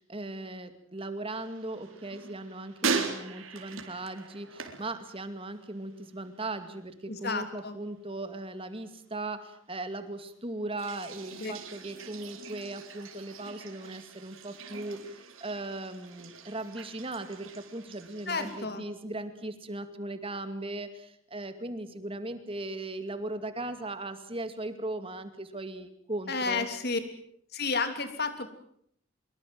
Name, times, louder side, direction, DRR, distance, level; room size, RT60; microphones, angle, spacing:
voice 1, 0.0-26.6, right 2 dB, 25° right, 10 dB, 2.4 m, -38 dB
sound 1, 1.3-5.7 6.0-6.6 10.7-18.6, right 4 dB, 80° right, 3.8 m, -39 dB
voice 2, 7.1-7.8 11.3-11.5 18.3-18.8 26.3-27.0 27.5-28.5, left 4 dB, 50° left, 8 dB, 3.2 m, -31 dB
24.0 x 22.5 x 7.8 m, 0.67 s
head